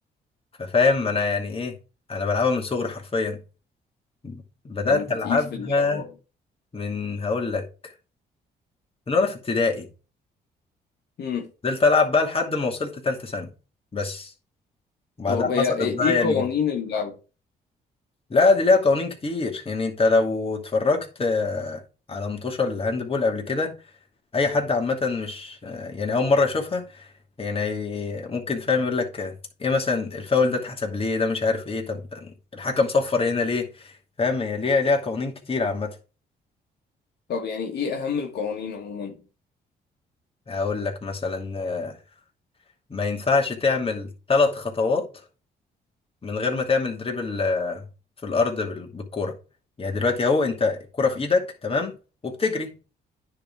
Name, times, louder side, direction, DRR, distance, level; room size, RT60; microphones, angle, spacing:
voice 1, 0.6-1.7 2.1-3.4 4.2-6.0 6.7-7.9 9.1-9.9 11.6-13.5 13.9-14.3 15.2-16.4 18.3-21.8 22.1-23.7 24.3-27.1 27.4-29.3 29.6-36.0 40.5-42.0 42.9-45.1 46.2-47.8 48.2-49.4 49.8-51.9 52.2-52.7, left 4 dB, 35° left, 2.5 m, -24 dB
voice 2, 4.9-6.1 11.2-11.5 15.3-17.2 37.3-39.2, left 6 dB, 70° left, 1.6 m, -27 dB
9.8 x 3.8 x 5.0 m
cardioid pair, 80°, 18 cm